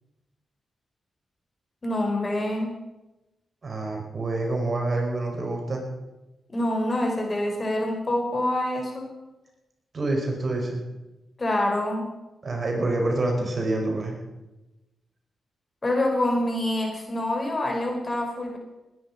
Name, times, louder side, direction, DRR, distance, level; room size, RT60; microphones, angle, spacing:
voice 1, 1.8-2.7 6.5-9.1 11.4-12.1 15.8-18.6, left 1 dB, 35° left, 2 dB, 4.3 m, -26 dB
voice 2, 3.6-5.8 9.9-10.8 12.4-14.2, right 2 dB, 50° right, 1 dB, 5.0 m, -27 dB
20.0 x 10.5 x 5.6 m, 1.0 s
cardioid pair, 60°, 0 cm